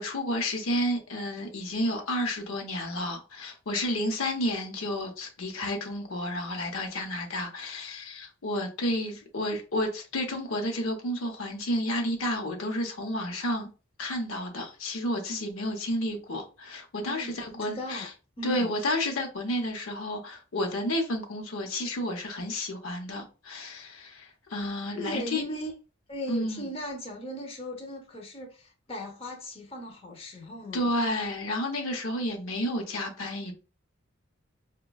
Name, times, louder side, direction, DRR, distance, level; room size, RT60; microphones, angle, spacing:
voice 1, 0.0-13.7 14.0-18.1 18.4-25.4 26.3-26.7 30.7-33.5, left 1 dB, 85° left, 0.8 m, -31 dB
voice 2, 17.0-18.1 18.4-18.7 24.9-25.7 26.1-30.9, equal, 30° left, 0.6 m, -38 dB
4.9 x 2.2 x 2.3 m
head